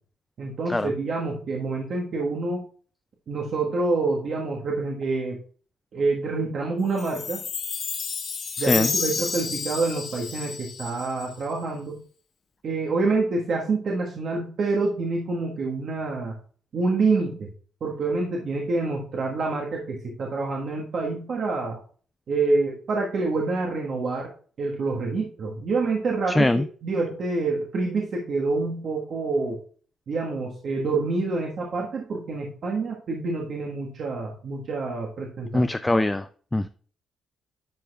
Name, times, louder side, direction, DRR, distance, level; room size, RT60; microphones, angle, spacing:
voice 1, 0.4-2.6 3.3-5.4 5.9-7.4 8.6-12.0 12.6-16.4 16.7-17.5 17.8-21.8 22.3-24.3 24.6-26.5 26.8-29.6 30.1-35.6, right 3 dB, 55° right, -1 dB, 1.4 m, -27 dB
Chime, 7.0-11.4, left 5 dB, 55° left, 1.3 m, -31 dB
voice 2, 8.6-8.9 26.3-26.7 35.5-36.7, left 2 dB, 15° left, 10 dB, 0.3 m, -23 dB
10.0 x 4.9 x 2.3 m, 0.43 s
cardioid pair, 90°, 0 cm